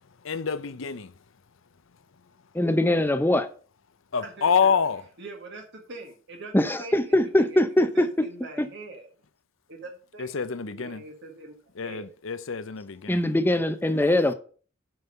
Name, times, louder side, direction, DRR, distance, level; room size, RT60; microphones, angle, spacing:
voice 1, 0.2-1.1 4.1-5.0 10.2-11.0 11.8-13.2, left 6 dB, 70° left, 0.7 m, -27 dB
voice 2, 2.5-3.5 6.5-8.3 8.6-8.7 13.1-14.3, left 1 dB, 10° left, 0.7 m, -22 dB
voice 3, 4.2-4.7 5.2-9.1 9.7-10.3 10.8-11.6 11.8-12.1, right 2 dB, 60° right, 1.7 m, -43 dB
7.9 x 5.4 x 5.4 m
head